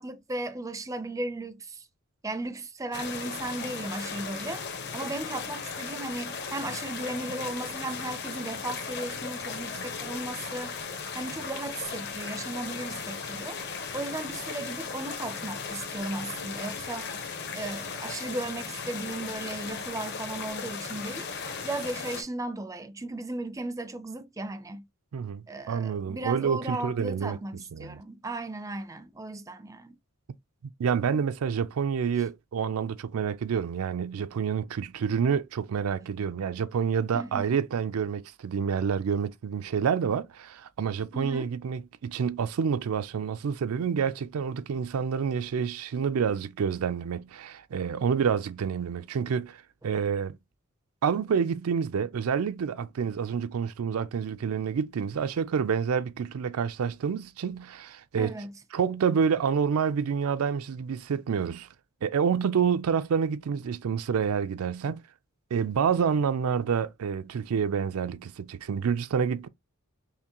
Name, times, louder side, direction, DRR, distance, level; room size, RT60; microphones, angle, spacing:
voice 1, 0.0-1.9 2.2-4.6 4.9-10.7 11.1-13.6 13.9-17.1 17.5-21.3 21.6-24.9 25.5-30.0 37.1-37.6 41.1-41.5 58.2-58.6, right 2 dB, 15° right, 0.4 m, -36 dB
sound 1, 2.9-22.2, left 5 dB, 50° left, 1.0 m, -37 dB
voice 2, 25.1-27.4 27.7-28.0 30.8-50.4 51.0-58.3 58.7-61.7 62.0-65.0 65.5-69.5, right 6 dB, 80° right, 0.4 m, -28 dB
5.6 x 2.1 x 2.9 m
head